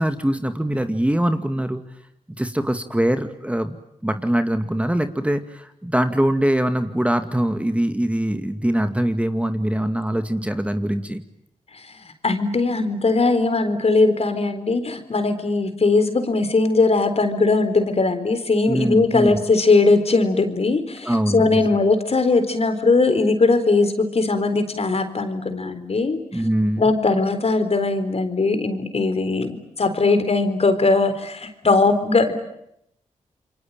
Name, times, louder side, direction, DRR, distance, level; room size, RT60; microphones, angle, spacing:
voice 1, 0.0-1.8 2.4-3.8 4.0-11.2 18.7-19.4 21.0-21.8 26.3-26.9, right 1 dB, 10° right, 8 dB, 2.2 m, -23 dB
voice 2, 12.2-26.2 26.8-32.4, left 3 dB, 50° left, 9 dB, 4.1 m, -19 dB
28.0 x 23.5 x 9.0 m, 0.79 s
supercardioid pair, 50°, 14 cm